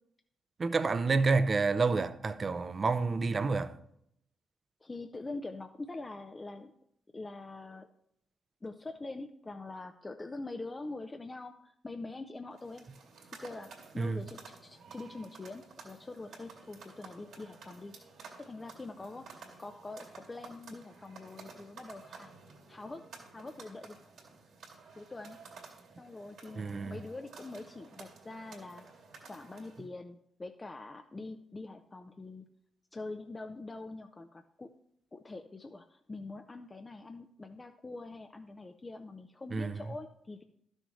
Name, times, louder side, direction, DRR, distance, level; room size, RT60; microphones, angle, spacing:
voice 1, 0.6-3.7 14.0-14.2 26.6-27.0 39.5-39.8, right 4 dB, 45° right, 0.7 m, -29 dB
voice 2, 4.8-6.7 7.1-7.9 8.6-12.9 13.4-13.7 13.9-17.9 18.4-22.3 22.7-23.0 23.3-24.0 24.9-25.4 26.0-28.9 29.2-32.4 32.9-34.7 35.1-40.4, left 2 dB, 30° left, 0.6 m, -44 dB
sound 1, 12.5-29.9, right 4 dB, 75° right, 2.6 m, -53 dB
12.5 x 6.4 x 3.2 m
hypercardioid pair, 45°, 0 cm